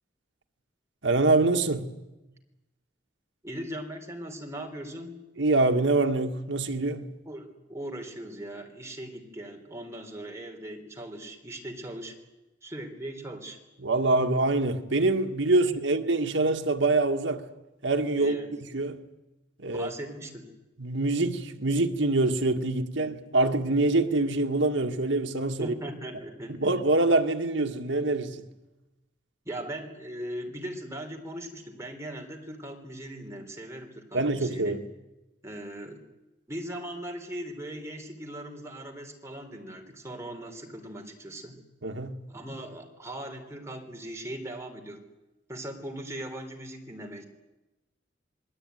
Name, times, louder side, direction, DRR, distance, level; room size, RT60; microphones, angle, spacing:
voice 1, 1.0-1.9 5.4-7.1 13.8-17.5 17.8-18.4 18.7-19.0 19.6-19.9 20.8-25.7 26.5-28.5 34.1-34.8 41.8-42.3, right 2 dB, 70° right, 1.7 m, -25 dB
voice 2, 3.4-5.2 7.3-12.1 12.6-13.6 18.2-18.5 19.7-20.5 25.6-26.7 29.5-34.8 35.4-36.0 36.5-41.5 42.3-45.1 45.5-47.2, right 1 dB, 15° right, 3.6 m, -39 dB
27.5 x 21.5 x 9.3 m
head